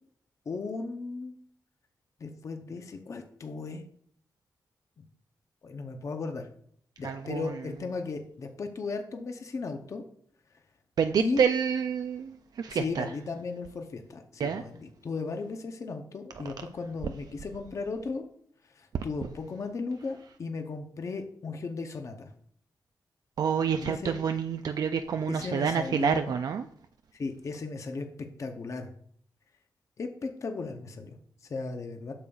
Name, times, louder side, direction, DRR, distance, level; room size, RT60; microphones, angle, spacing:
voice 1, 0.5-1.3 2.2-3.8 5.0-5.1 5.6-6.5 7.0-10.0 11.2-11.5 12.7-18.2 18.8-22.3 23.7-24.1 25.3-26.3 27.1-28.1 28.4-28.9 30.0-32.1, left 4 dB, 45° left, 0.6 m, -36 dB
voice 2, 7.0-7.5 11.0-13.1 14.4-14.6 23.4-26.6, right 7 dB, 60° right, 0.3 m, -28 dB
8.5 x 6.8 x 2.3 m
wide cardioid pair, 150°, 7 cm